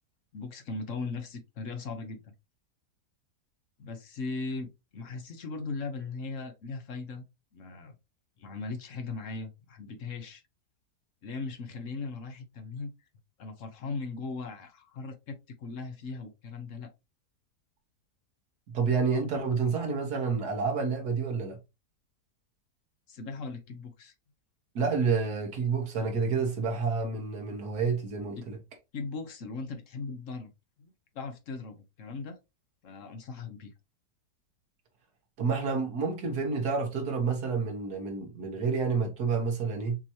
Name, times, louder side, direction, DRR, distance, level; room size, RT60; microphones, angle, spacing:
voice 1, 0.3-2.3 3.8-7.2 7.5-7.9 8.4-10.4 11.2-12.9 13.4-16.9 23.1-24.1 28.4-28.5 28.9-30.5 30.8-30.9 31.1-32.4 32.8-33.7, left 3 dB, 55° left, 1.1 m, -38 dB
voice 2, 18.7-21.6 24.8-28.6 35.4-40.0, right 5 dB, 70° right, 1.9 m, -29 dB
6.2 x 3.0 x 2.7 m
omnidirectional pair, 1.8 m